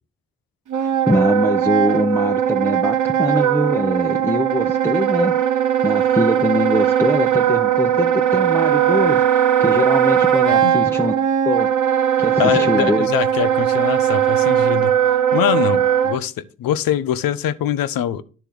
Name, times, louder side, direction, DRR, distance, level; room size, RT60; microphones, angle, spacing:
Wind instrument woodwind instrument, 0.7-16.2, right 10 dB, 60° right, 0.8 m, -18 dB
voice 1, 0.8-11.1 11.5-11.7 12.2-13.1, left 1 dB, 5° left, 0.6 m, -23 dB
voice 2, 12.4-16.3 16.6-18.2, left 10 dB, 90° left, 0.5 m, -23 dB
10.0 x 3.4 x 5.9 m
supercardioid pair, 45°, 33 cm